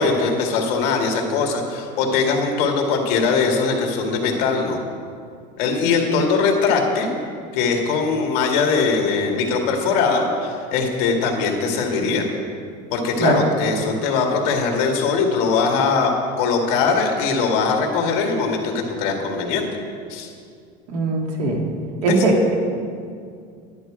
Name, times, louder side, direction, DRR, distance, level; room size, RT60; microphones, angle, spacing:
voice 1, 0.0-4.8 5.6-7.2 7.5-12.3 12.9-16.1 16.4-19.7 20.1-20.3 22.0-22.3, left 4 dB, 55° left, 2 dB, 1.9 m, -21 dB
voice 2, 20.9-21.6 22.0-22.5, right 2 dB, 75° right, 1 dB, 2.2 m, -19 dB
10.5 x 10.5 x 4.9 m, 2.2 s
cardioid pair, 175°, 20 cm